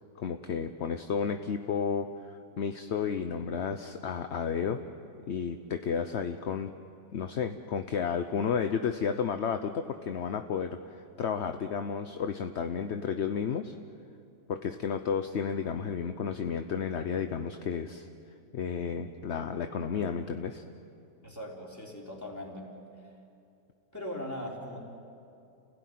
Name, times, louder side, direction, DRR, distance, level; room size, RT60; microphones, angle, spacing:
voice 1, 0.2-4.8 5.3-6.7 7.1-13.8 14.5-18.1 18.5-20.6, left 6 dB, 55° left, 8 dB, 0.9 m, -32 dB
voice 2, 21.2-22.7 23.9-24.8, left 1 dB, 10° left, -2 dB, 3.8 m, -39 dB
30.0 x 17.0 x 9.4 m, 2.7 s
omnidirectional pair, 1.8 m